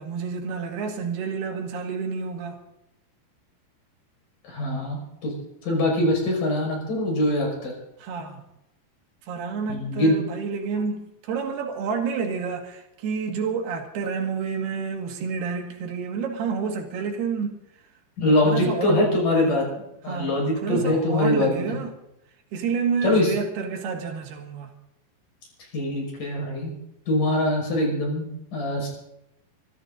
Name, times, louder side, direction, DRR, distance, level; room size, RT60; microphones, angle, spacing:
voice 1, 0.0-2.6 8.0-8.4 9.3-17.6 18.3-19.1 20.1-21.9 22.5-24.7, right 5 dB, 85° right, 4.1 m, -29 dB
voice 2, 4.4-5.3 5.6-7.7 9.7-10.2 18.2-19.7 20.0-21.7 23.0-23.3 25.7-26.7 27.1-28.9, left 1 dB, 55° left, 7.3 m, -23 dB
25.0 x 13.5 x 4.0 m
omnidirectional pair, 4.5 m